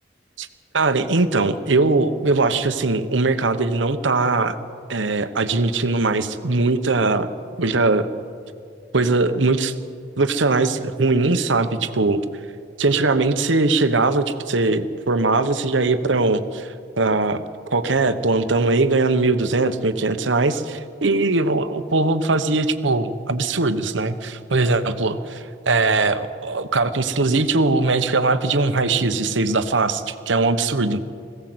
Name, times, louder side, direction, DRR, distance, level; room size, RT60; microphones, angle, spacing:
voice 1, 0.7-4.6 4.9-7.3 7.6-8.1 8.9-9.7 10.2-12.2 12.8-17.4 17.7-31.0, right 3 dB, 80° right, 10 dB, 1.0 m, -20 dB
20.5 x 16.5 x 7.9 m, 2.3 s
head